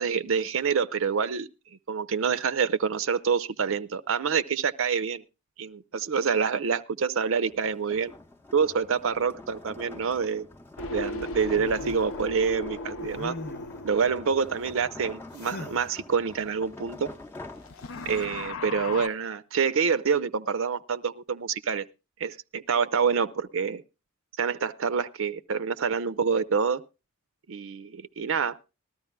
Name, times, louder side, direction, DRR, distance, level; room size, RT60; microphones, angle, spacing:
voice 1, 0.0-1.5 1.9-5.2 5.6-8.1 8.5-10.5 10.9-13.4 13.8-17.1 18.1-21.9 22.2-23.8 24.4-26.8 27.5-28.6, right 6 dB, 70° right, 0.5 m, -27 dB
sound 1, 7.4-18.3, left 2 dB, 10° left, 0.7 m, -45 dB
sound 2, 10.8-15.3 17.6-19.1, left 2 dB, 70° left, 0.7 m, -37 dB
sound 3, 11.5-12.1 13.0-13.9 15.3-15.8 17.8-18.2, left 2 dB, 50° left, 0.9 m, -41 dB
19.5 x 13.0 x 2.2 m
head